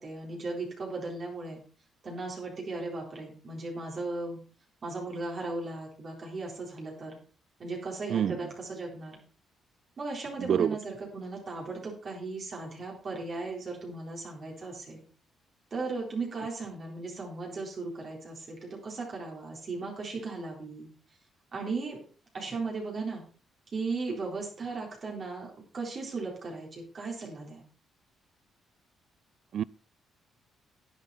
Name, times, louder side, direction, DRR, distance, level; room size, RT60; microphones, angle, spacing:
voice 1, 0.0-1.6 2.0-4.4 4.8-7.2 7.6-9.2 10.0-15.0 15.7-20.9 21.5-22.0 22.3-23.2 23.7-27.6, right 3 dB, 45° right, 3.9 m, -37 dB
voice 2, 8.1-8.4 10.5-10.8 29.5-29.6, right 9 dB, 60° right, 0.4 m, -26 dB
11.0 x 8.9 x 4.2 m
cardioid pair, 90°, 0 cm